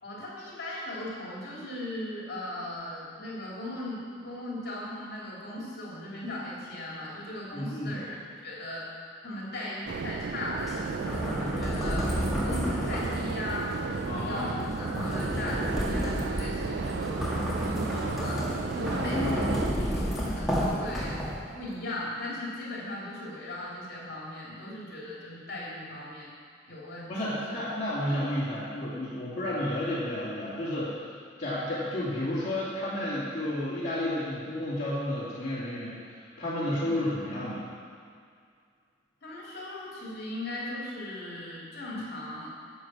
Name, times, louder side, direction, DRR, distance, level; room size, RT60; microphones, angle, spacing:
voice 1, 0.0-8.8 9.2-12.1 12.4-17.3 17.6-18.4 18.7-19.4 19.8-21.1 21.5-26.3 26.7-27.6 28.5-28.6 36.8-37.0 39.2-42.5, left 1 dB, 55° left, -6 dB, 3.2 m, -38 dB
voice 2, 7.5-8.0 14.0-14.7 18.9-19.6 27.1-37.7, left 1 dB, 35° left, -11 dB, 2.6 m, -32 dB
sound 1, 9.9-19.7, right 5 dB, 60° right, 0.4 m, -35 dB
sound 2, 10.6-21.6, equal, ahead, 2.2 m, -31 dB
11.0 x 7.8 x 6.1 m, 2.2 s
head